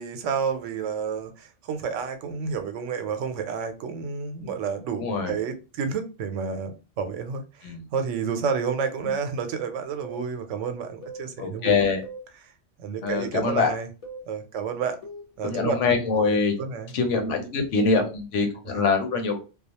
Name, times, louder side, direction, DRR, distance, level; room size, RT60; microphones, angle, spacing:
voice 1, 0.0-11.8 12.8-13.9 14.3-15.0 15.4-15.8 16.2-16.9 18.7-18.8, right 6 dB, 90° right, 0.9 m, -30 dB
voice 2, 5.0-5.3 7.6-7.8 9.0-9.1 11.4-12.0 13.0-13.7 15.4-16.5 16.9-19.4, left 4 dB, 90° left, 1.0 m, -24 dB
sound 1, 10.0-10.3 11.0-11.3 12.0-12.3 13.0-13.3 14.0-14.3 15.0-15.3, right 2 dB, 40° left, 0.6 m, -39 dB
2.3 x 2.2 x 2.8 m
omnidirectional pair, 1.2 m